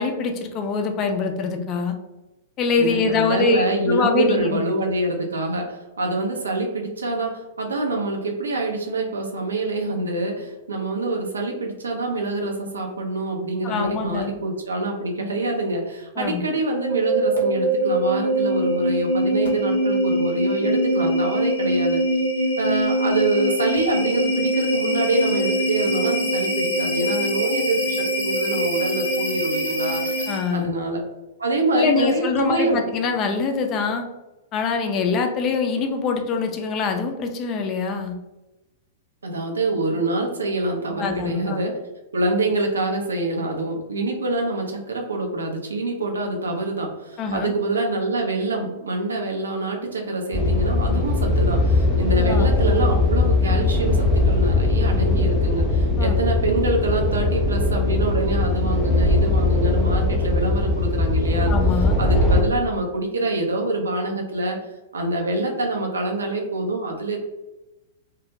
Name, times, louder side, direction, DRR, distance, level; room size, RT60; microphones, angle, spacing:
voice 1, 0.0-2.0 2.6-4.6 13.6-14.3 16.2-16.4 30.3-30.7 31.7-34.1 34.5-38.1 41.0-41.6 47.2-47.5 52.2-52.5 56.0-56.2 61.5-62.0, left 5 dB, 35° left, 4 dB, 0.4 m, -24 dB
voice 2, 2.8-22.0 22.6-30.0 30.5-31.0 31.4-32.8 39.2-41.8 42.1-61.5 62.0-64.6 64.9-67.2, right 2 dB, 75° right, 2 dB, 0.5 m, -25 dB
sound 1, 16.7-30.6, right 1 dB, 80° left, 0.6 m, -23 dB
sound 2, 50.3-62.4, left 2 dB, ahead, 0.7 m, -20 dB
2.2 x 2.1 x 2.7 m, 1.0 s
figure-of-eight pair, 105°, 0 cm